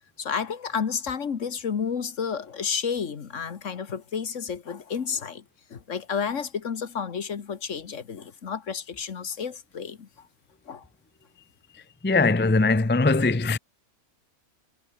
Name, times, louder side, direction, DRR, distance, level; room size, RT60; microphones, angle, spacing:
voice 1, 0.2-5.4 5.7-10.3 10.7-10.8, left 6 dB, 60° left, 1.7 m, -31 dB
voice 2, 12.0-13.6, left 3 dB, 10° left, 0.5 m, -21 dB
omnidirectional pair, 1.5 m